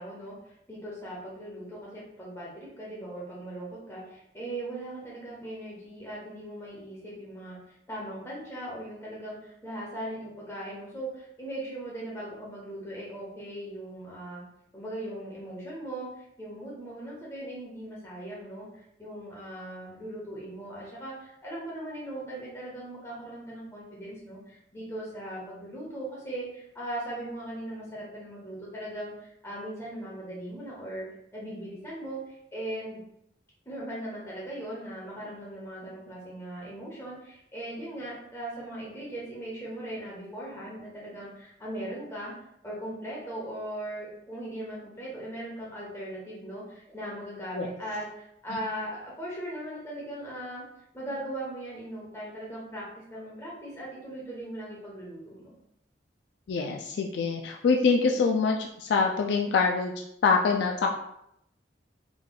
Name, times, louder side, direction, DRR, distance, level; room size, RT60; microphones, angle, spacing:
voice 1, 0.0-7.6 7.9-14.4 14.7-31.1 31.3-33.0 33.6-42.3 42.6-50.6 50.9-55.6, right 1 dB, 15° left, -5 dB, 1.1 m, -39 dB
voice 2, 56.5-60.9, left 4 dB, 60° left, 1 dB, 0.3 m, -25 dB
3.7 x 3.3 x 2.3 m, 0.77 s
head